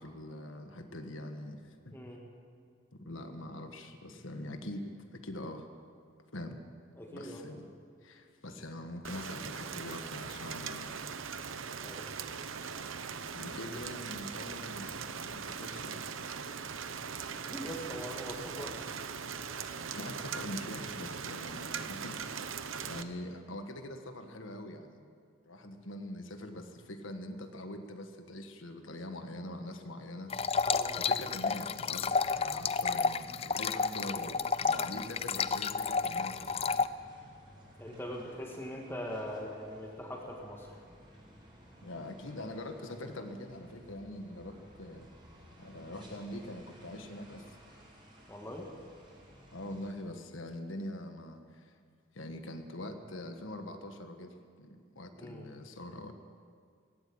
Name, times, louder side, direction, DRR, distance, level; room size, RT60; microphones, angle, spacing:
voice 1, 0.0-2.0 2.9-5.7 6.3-6.6 7.1-7.7 8.0-11.1 13.3-16.0 19.9-25.1 25.4-30.4 31.0-36.8 41.8-45.1 45.6-47.5 49.5-51.7 52.1-56.1, left 1 dB, 80° left, 6 dB, 1.6 m, -43 dB
voice 2, 1.9-2.2 6.9-7.5 11.8-12.2 17.4-18.9 30.6-31.1 37.8-40.7 48.3-48.7 55.2-55.5, equal, 10° left, 0 dB, 2.0 m, -42 dB
Rain, 9.0-23.0, right 6 dB, 80° right, 1.0 m, -40 dB
sound 1, 30.3-36.9, left 5 dB, 30° left, 0.4 m, -31 dB
sound 2, 36.3-49.9, equal, 25° right, 5.4 m, -56 dB
17.5 x 17.5 x 8.7 m, 2.2 s
head